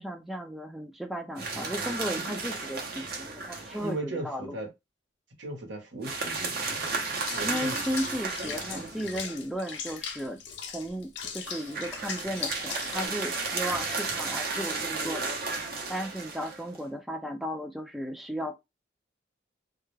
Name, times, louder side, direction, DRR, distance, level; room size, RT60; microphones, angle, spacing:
voice 1, 0.0-4.6 7.4-10.4 10.7-18.5, equal, ahead, 0.3 m, -35 dB
sound 1, 1.4-4.0 6.0-9.3 11.4-16.8, right 3 dB, 55° right, 0.7 m, -33 dB
voice 2, 3.8-4.7 5.4-7.8, right 2 dB, 85° right, 0.9 m, -38 dB
Water / Bathtub (filling or washing), 7.3-13.1, left 6 dB, 75° left, 0.6 m, -39 dB
2.3 x 2.1 x 3.1 m
head